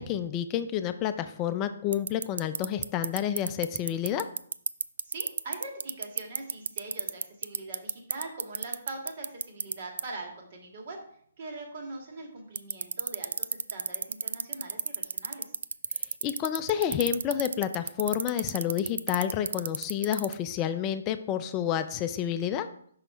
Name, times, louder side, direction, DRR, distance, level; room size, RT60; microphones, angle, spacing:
voice 1, 0.0-4.3 16.2-22.7, left 10 dB, 25° left, 9 dB, 0.4 m, -29 dB
sound 1, 1.9-9.7 10.0-10.1 12.6-20.3, right 6 dB, 65° right, 0.4 m, -29 dB
voice 2, 5.0-11.0 11.4-15.5, right 2 dB, 45° right, 1 dB, 2.2 m, -42 dB
6.0 x 5.7 x 4.5 m, 0.63 s
figure-of-eight pair, 135°, 0 cm